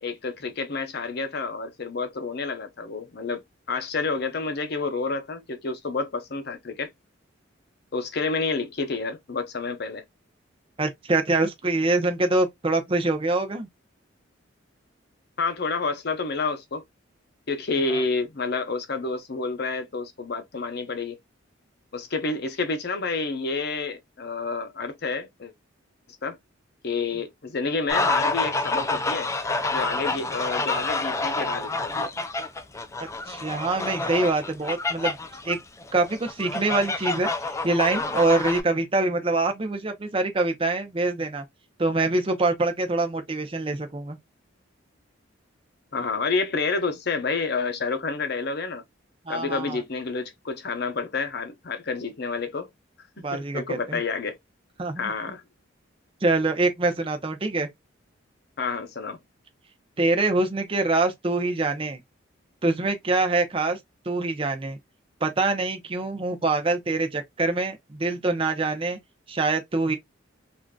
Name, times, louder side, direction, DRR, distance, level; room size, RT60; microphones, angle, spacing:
voice 1, 0.0-3.4 3.7-6.9 7.9-10.0 15.4-16.8 17.5-21.2 21.9-25.5 26.2-26.4 26.8-29.3 29.7-32.1 45.9-48.8 49.3-52.7 53.2-54.4 55.0-55.4 58.6-59.2, left 4 dB, 55° left, 0.7 m, -29 dB
voice 2, 10.8-13.7 17.9-18.0 33.3-35.2 35.4-35.6 35.9-37.3 37.6-41.4 41.8-44.2 49.3-49.8 53.2-54.0 54.8-55.1 56.2-57.7 60.0-62.0 62.6-63.8 64.1-64.8 65.2-69.0 69.3-70.0, right 2 dB, 25° right, 0.6 m, -25 dB
sound 1, 27.9-38.6, left 3 dB, 15° left, 0.3 m, -28 dB
3.6 x 2.5 x 2.2 m
head